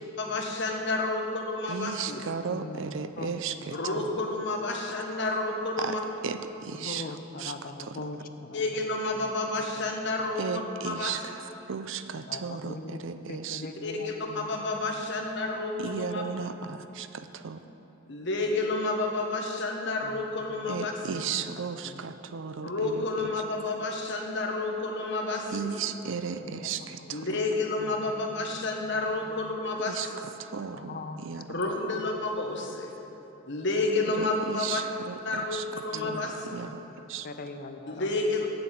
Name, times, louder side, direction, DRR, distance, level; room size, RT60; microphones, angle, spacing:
voice 1, 0.2-2.2 3.7-6.0 8.5-10.4 10.8-11.1 13.8-16.2 18.1-21.2 22.6-25.7 27.1-30.1 31.5-32.9 33.5-34.8 35.2-36.6 37.9-38.5, left 2 dB, 65° left, 1 dB, 1.3 m, -30 dB
voice 2, 1.7-4.1 5.8-6.0 6.2-7.1 7.4-7.5 7.8-8.0 10.4-13.6 15.8-17.6 20.7-23.0 25.5-27.3 29.9-30.1 30.4-31.6 34.2-35.7 35.9-36.2 36.5-37.3, right 6 dB, 70° right, 10 dB, 0.5 m, -35 dB
voice 3, 2.5-3.4 3.7-4.0 6.8-8.9 9.1-9.3 9.8-9.9 12.3-13.0 13.3-14.8 20.0-20.2 20.5-20.7 21.0-21.3 21.8-22.3 26.4-27.2 27.8-28.1 28.6-28.7 28.9-29.4 30.7-31.4 31.9-32.0 35.9-36.8 37.2-38.1, left 3 dB, 45° left, 8 dB, 0.5 m, -42 dB
7.8 x 7.8 x 8.4 m, 3.0 s
head